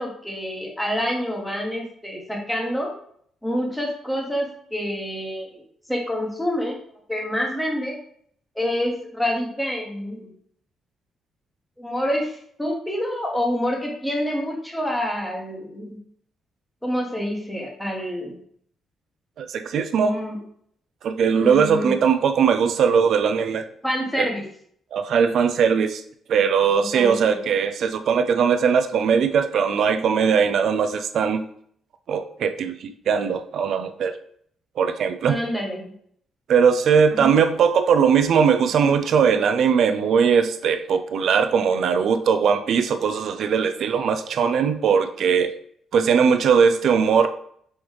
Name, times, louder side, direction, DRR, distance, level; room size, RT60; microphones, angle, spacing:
voice 1, 0.0-2.9 3.4-5.6 5.9-6.8 7.1-8.0 8.5-10.3 11.8-16.0 16.8-18.4 20.0-20.4 21.3-22.0 23.8-24.4 26.8-27.4 35.2-35.9 37.1-37.3, equal, 5° left, -1 dB, 1.1 m, -27 dB
voice 2, 19.4-20.1 21.0-23.7 24.2-24.3 24.9-26.0 26.3-31.4 32.1-34.1 34.8-35.4 36.5-45.5 45.9-47.3, right 6 dB, 60° right, 8 dB, 0.4 m, -20 dB
5.5 x 3.1 x 3.2 m, 0.64 s
cardioid pair, 130°, 0 cm